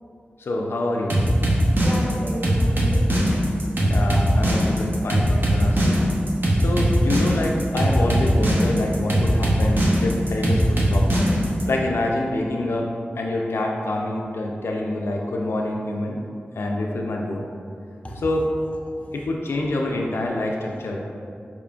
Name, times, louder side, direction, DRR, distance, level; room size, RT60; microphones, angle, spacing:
voice 1, 0.4-1.2 3.9-6.0 6.6-11.1 11.7-12.9 13.2-16.2 16.5-17.5 18.2-18.4 19.1-21.0, left 2 dB, 85° left, -1 dB, 0.3 m, -26 dB
sound 1, 1.1-11.6, equal, 55° right, 0.8 m, -20 dB
voice 2, 1.7-3.2 18.0-18.2 18.9-19.2 20.5-20.7, equal, 30° left, -1 dB, 0.6 m, -34 dB
4.9 x 3.5 x 2.4 m, 2.4 s
wide cardioid pair, 55°, 4 cm